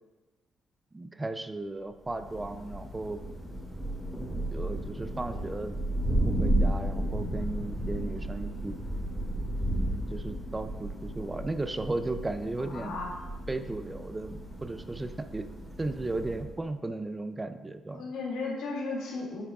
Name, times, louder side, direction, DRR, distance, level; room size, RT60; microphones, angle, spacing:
voice 1, 0.9-3.2 4.5-5.8 6.2-8.8 10.1-13.0 13.5-15.5 15.8-18.1, right 2 dB, 20° right, 10 dB, 0.4 m, -35 dB
Thunder, 2.0-16.6, right 1 dB, ahead, 2.1 m, -33 dB
voice 2, 12.7-13.1 17.9-19.4, left 3 dB, 85° left, -3 dB, 1.8 m, -35 dB
8.6 x 7.2 x 2.4 m, 1.2 s
cardioid pair, 90°, 0 cm